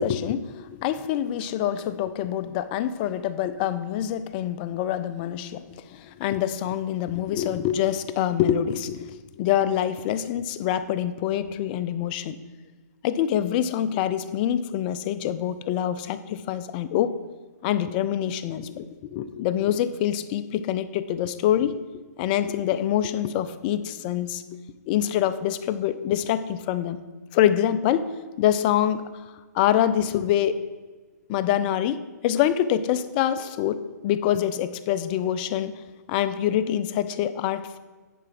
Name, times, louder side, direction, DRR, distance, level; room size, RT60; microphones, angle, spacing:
voice 1, 0.0-5.6 5.9-12.4 13.0-17.1 17.6-24.4 24.9-27.0 27.3-28.1 28.4-29.1 29.5-30.6 31.3-35.7 36.1-37.8, left 10 dB, 30° left, 13 dB, 0.5 m, -25 dB
10.0 x 4.7 x 5.9 m, 1.3 s
hypercardioid pair, 140°, 10 cm